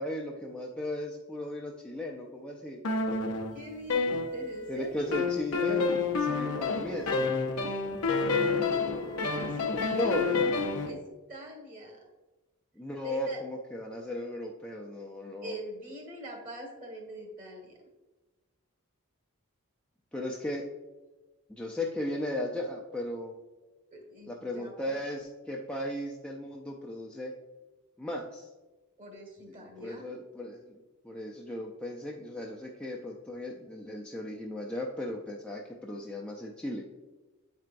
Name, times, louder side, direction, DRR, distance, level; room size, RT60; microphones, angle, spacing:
voice 1, 0.0-2.8 4.7-7.4 9.9-10.3 12.8-15.6 20.1-20.6 21.5-23.3 24.3-27.3 28.0-28.5 29.8-36.9, left 1 dB, 5° left, -1 dB, 0.4 m, -36 dB
sound 1, 2.8-4.7 5.1-10.9, left 4 dB, 90° left, 0.7 m, -29 dB
voice 2, 3.5-5.3 8.3-11.0 11.3-12.0 13.0-13.4 15.4-17.8 23.9-25.0 29.0-30.0, equal, 35° right, 1 dB, 1.6 m, -44 dB
8.3 x 4.5 x 2.5 m, 1.1 s
head